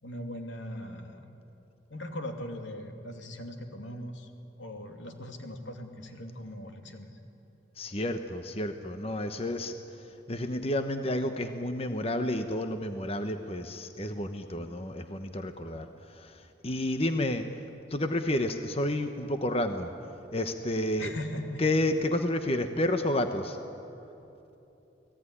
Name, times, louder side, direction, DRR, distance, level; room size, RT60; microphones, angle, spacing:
voice 1, 0.0-1.2 1.9-4.3 4.6-7.2 21.0-21.6, left 1 dB, 85° left, 4 dB, 2.8 m, -39 dB
voice 2, 7.8-9.7 10.3-17.5 17.9-19.9 20.3-21.1 21.6-23.6, left 1 dB, 30° left, 7 dB, 1.1 m, -30 dB
29.5 x 19.0 x 10.0 m, 3.0 s
head